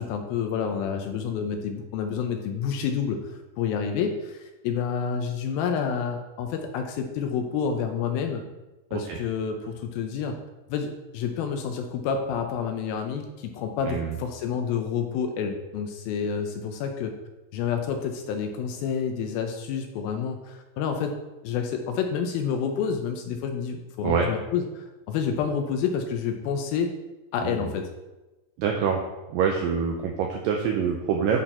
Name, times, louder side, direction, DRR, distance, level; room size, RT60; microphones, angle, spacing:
voice 1, 0.0-8.4 8.9-10.4 10.7-17.1 17.5-21.2 21.4-26.9 27.3-27.9, left 6 dB, 80° left, 5 dB, 2.3 m, -29 dB
voice 2, 28.6-29.0 29.3-31.4, right 7 dB, 85° right, 2 dB, 1.9 m, -25 dB
10.0 x 4.4 x 4.3 m, 1.1 s
omnidirectional pair, 4.7 m